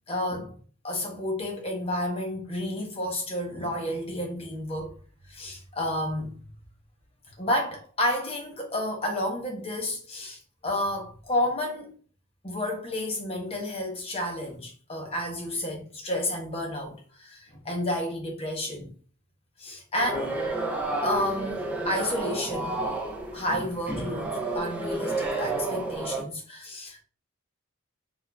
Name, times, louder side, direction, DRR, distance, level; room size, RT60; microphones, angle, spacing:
voice 1, 0.1-0.6 0.8-4.9 5.3-6.4 7.4-11.9 12.4-18.9 19.6-20.4 21.0-22.8 23.3-27.0, left 1 dB, 25° left, 0.8 m, -31 dB
sound 1, 20.0-26.2, right 2 dB, 10° right, 0.7 m, -31 dB
4.3 x 2.5 x 2.2 m
head